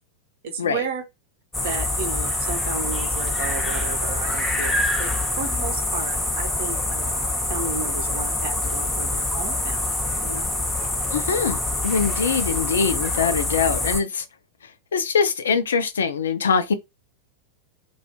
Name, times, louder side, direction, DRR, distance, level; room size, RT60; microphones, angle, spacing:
voice 1, 0.4-1.0 1.6-5.1 5.4-9.8 10.2-10.5, right 5 dB, 55° right, 0.7 m, -33 dB
sound 1, 1.5-14.0, left 2 dB, 10° left, 0.6 m, -25 dB
voice 2, 11.1-14.2 14.9-16.7, left 6 dB, 65° left, 0.4 m, -23 dB
2.4 x 2.3 x 2.7 m
figure-of-eight pair, 90°, 0 cm